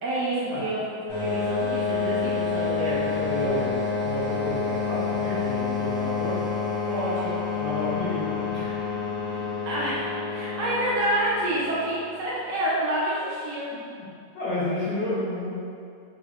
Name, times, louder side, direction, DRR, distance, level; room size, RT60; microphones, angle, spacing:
voice 1, 0.0-3.0 3.4-3.6 6.9-7.4 9.3-13.7 14.7-14.8, right 1 dB, 65° right, -7 dB, 1.2 m, -28 dB
sound 1, 1.1-12.5, left 5 dB, 70° left, 2.0 m, -29 dB
voice 2, 2.9-6.4 7.6-8.9 13.9-14.1 14.3-15.5, left 1 dB, 85° left, -10 dB, 2.4 m, -31 dB
5.1 x 3.1 x 2.9 m, 2.4 s
omnidirectional pair, 2.3 m